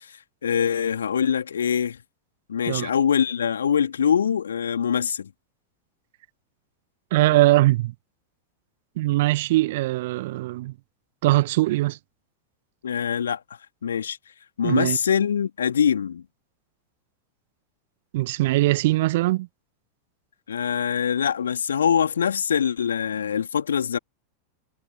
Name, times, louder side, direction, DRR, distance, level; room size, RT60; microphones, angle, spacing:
voice 1, 0.0-2.0 2.5-5.3 12.8-13.4 13.8-14.2 14.6-16.2 20.5-24.0, left 8 dB, 70° left, 2.7 m, -23 dB
voice 2, 7.1-7.9 9.0-10.7 11.2-12.0 14.6-15.0 18.1-19.5, right 18 dB, 55° right, 1.4 m, -21 dB
figure-of-eight pair, 85°, 0 cm